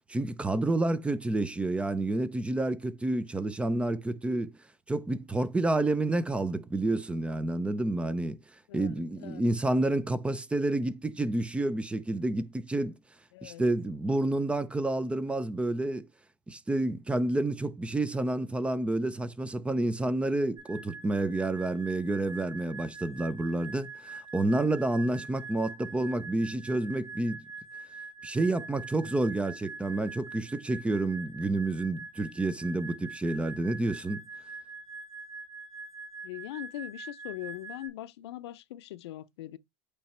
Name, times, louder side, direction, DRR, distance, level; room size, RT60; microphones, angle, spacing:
voice 1, 0.1-4.5 4.9-8.4 8.7-13.0 13.4-16.1 16.5-27.4 28.2-34.2, right 2 dB, 10° right, 0.5 m, -29 dB
voice 2, 8.7-9.4 13.3-13.6 36.2-39.6, left 15 dB, 85° left, 0.6 m, -41 dB
sound 1, 20.6-37.9, right 3 dB, 30° right, 4.3 m, -44 dB
8.5 x 3.1 x 4.3 m
supercardioid pair, 130°, 13 cm